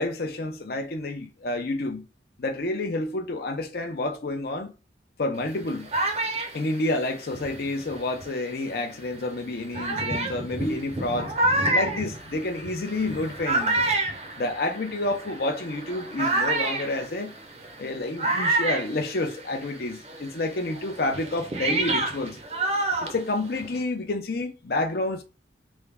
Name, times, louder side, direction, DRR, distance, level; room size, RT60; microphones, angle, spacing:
voice 1, 0.0-2.1 2.4-4.7 5.2-5.9 6.5-11.3 11.7-13.8 14.4-17.3 17.8-22.4 23.0-25.2, left 2 dB, 55° left, 0.6 m, -29 dB
sound 1, 5.4-8.5 9.1-9.2 9.7-19.8 20.0-23.8, right 2 dB, 35° right, 0.6 m, -28 dB
3.5 x 2.1 x 3.4 m
head